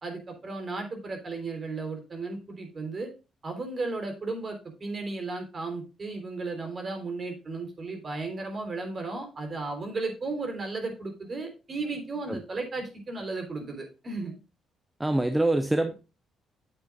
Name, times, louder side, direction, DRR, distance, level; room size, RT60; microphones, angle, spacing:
voice 1, 0.0-3.1 3.4-14.3, right 3 dB, 40° right, 3.7 m, -34 dB
voice 2, 15.0-15.9, right 2 dB, 10° right, 0.9 m, -25 dB
9.3 x 8.4 x 2.4 m
cardioid pair, 90°, 0 cm